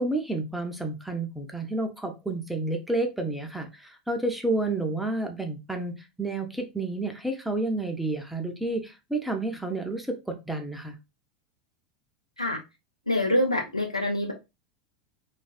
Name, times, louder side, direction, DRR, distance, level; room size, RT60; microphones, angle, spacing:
voice 1, 0.0-10.9, right 2 dB, 5° right, 4 dB, 0.6 m, -30 dB
voice 2, 13.1-14.3, left 1 dB, 90° left, 2 dB, 0.7 m, -25 dB
3.2 x 2.5 x 2.3 m, 0.24 s
figure-of-eight pair, 85°, 3 cm